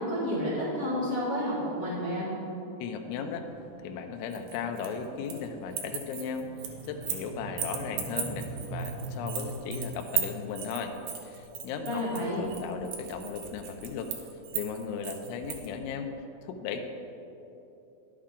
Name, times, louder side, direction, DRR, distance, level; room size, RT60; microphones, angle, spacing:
voice 1, 0.0-2.3 11.8-12.4, equal, 60° left, -12 dB, 1.5 m, -30 dB
voice 2, 2.8-3.4 3.8-6.5 6.9-10.9 11.2-14.1 14.5-16.1 16.4-16.8, left 6 dB, 85° left, 5 dB, 2.7 m, -36 dB
sound 1, 3.0-9.8, right 2 dB, 60° right, 2.9 m, -43 dB
sound 2, 4.3-5.5 5.7-7.3 7.6-15.7, right 10 dB, 80° right, 2.8 m, -36 dB
11.0 x 8.5 x 3.7 m, 2.9 s
omnidirectional pair, 6.0 m